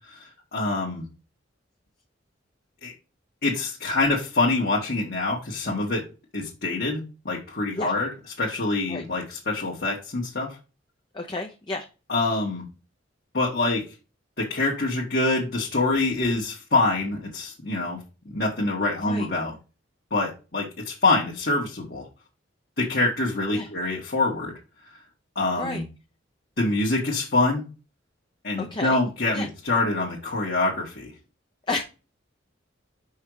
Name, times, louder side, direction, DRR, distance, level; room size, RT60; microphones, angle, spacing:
voice 1, 0.2-1.1 2.8-2.9 3.4-6.1 6.3-8.1 8.4-10.6 12.1-12.6 13.3-13.8 14.4-18.0 18.3-19.5 20.1-22.1 22.8-24.5 25.4-25.8 26.6-27.7 28.4-31.1, left 2 dB, 55° left, -4 dB, 1.7 m, -25 dB
voice 2, 11.1-11.9 19.0-19.3 23.5-23.7 25.5-25.9 28.6-29.0 29.3-29.5 31.7-31.8, left 2 dB, 25° left, 2 dB, 0.8 m, -31 dB
5.6 x 5.2 x 4.8 m, 0.31 s
head